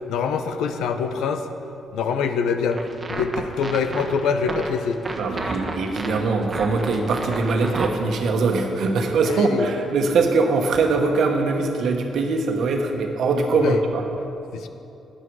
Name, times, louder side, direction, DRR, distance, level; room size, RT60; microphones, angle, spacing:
voice 1, 0.1-1.5 1.9-2.8 3.1-5.0 5.4-5.5 9.3-9.7 13.5-13.8 14.5-14.7, left 6 dB, 85° left, 8 dB, 0.7 m, -24 dB
sound 1, 2.7-7.9, right 3 dB, 30° right, 1.2 m, -31 dB
voice 2, 5.2-14.0, right 3 dB, 65° right, 3 dB, 1.3 m, -22 dB
11.5 x 9.9 x 4.8 m, 2.8 s
cardioid pair, 90°, 0 cm